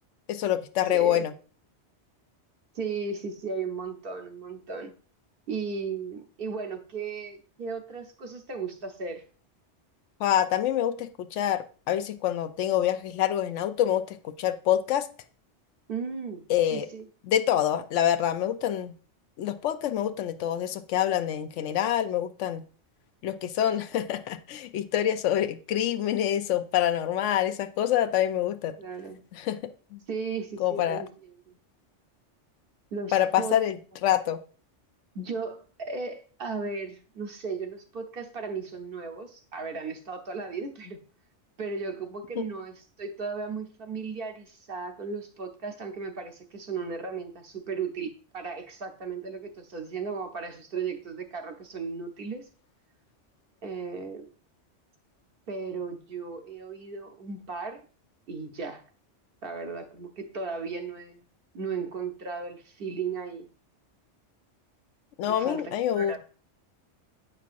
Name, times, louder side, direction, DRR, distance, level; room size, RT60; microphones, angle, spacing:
voice 1, 0.3-1.3 10.2-15.1 16.5-16.9 17.3-18.9 19.4-22.6 23.2-28.8 29.3-29.6 29.9-30.0 30.6-31.0 33.1-33.8 34.0-34.4 42.4-42.5 65.2-66.2, left 11 dB, 80° left, 10 dB, 0.9 m, -26 dB
voice 2, 0.9-1.2 2.7-4.9 5.5-9.2 15.9-17.0 28.8-29.2 30.1-31.1 31.5-31.6 32.9-33.6 35.1-41.0 41.6-52.5 53.6-54.3 55.5-57.9 58.3-58.8 59.4-61.3 61.5-63.5 65.3-66.2, right 5 dB, 55° right, 5 dB, 0.9 m, -36 dB
8.2 x 5.5 x 2.5 m, 0.38 s
omnidirectional pair, 1.2 m